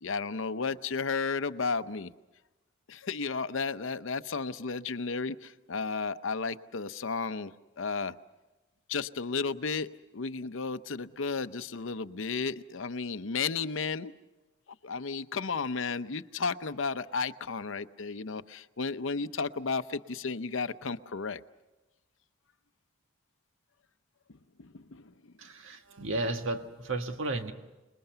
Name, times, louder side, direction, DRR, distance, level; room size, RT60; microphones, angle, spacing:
voice 1, 0.0-2.1 2.9-8.2 8.9-14.1 14.8-21.4 24.6-25.1, left 4 dB, 80° left, 12 dB, 0.7 m, -33 dB
voice 2, 25.4-27.5, right 2 dB, 80° right, 6 dB, 1.6 m, -33 dB
28.5 x 21.0 x 6.8 m, 1.1 s
head